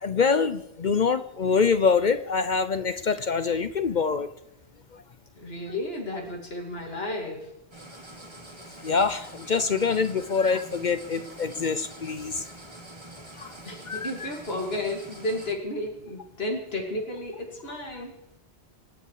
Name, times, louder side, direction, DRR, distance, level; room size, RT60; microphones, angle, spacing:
voice 1, 0.0-4.3 8.8-12.4 13.4-13.5 13.9-14.3, left 5 dB, 50° left, 11 dB, 0.8 m, -25 dB
voice 2, 5.4-7.5 13.7-18.2, left 1 dB, 65° left, 1 dB, 2.7 m, -33 dB
sound 1, 7.7-15.5, right 1 dB, 25° right, 2.0 m, -45 dB
26.0 x 9.8 x 4.8 m, 0.86 s
omnidirectional pair, 1.1 m